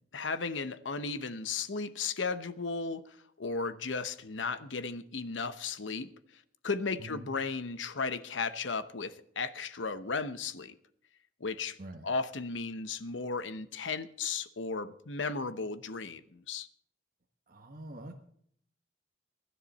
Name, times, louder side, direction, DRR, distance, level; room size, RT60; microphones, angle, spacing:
voice 1, 0.1-6.1 6.6-10.8 11.4-11.8 12.0-16.7, left 4 dB, 90° left, 0.9 m, -35 dB
voice 2, 17.5-18.1, right 1 dB, 50° right, 1.3 m, -45 dB
23.0 x 10.5 x 4.2 m
head